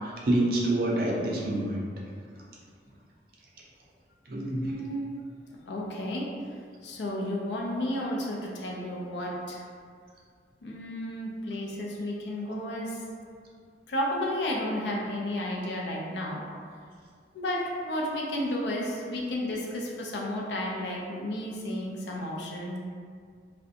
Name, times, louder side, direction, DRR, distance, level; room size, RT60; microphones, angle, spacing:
voice 1, 0.0-1.8 4.3-4.6, right 1 dB, 55° right, -3 dB, 0.4 m, -27 dB
voice 2, 4.4-5.1 5.7-6.3 6.8-9.6 10.6-13.0 13.9-16.4 17.3-22.8, left 1 dB, 75° left, -2 dB, 0.4 m, -32 dB
2.5 x 2.1 x 2.6 m, 2.1 s
head